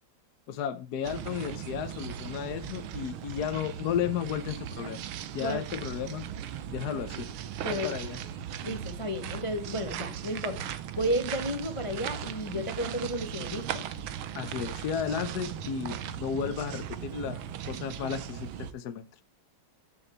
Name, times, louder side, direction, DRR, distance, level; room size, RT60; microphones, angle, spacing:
voice 1, 0.5-5.0 5.3-6.3 6.7-7.3 7.7-8.2 14.3-19.0, left 8 dB, 65° left, 1.1 m, -33 dB
sound 1, 1.0-18.7, right 9 dB, 85° right, 1.7 m, -38 dB
voice 2, 8.6-10.7 11.0-13.9, equal, 40° left, 0.4 m, -32 dB
13.5 x 7.0 x 3.3 m
omnidirectional pair, 2.2 m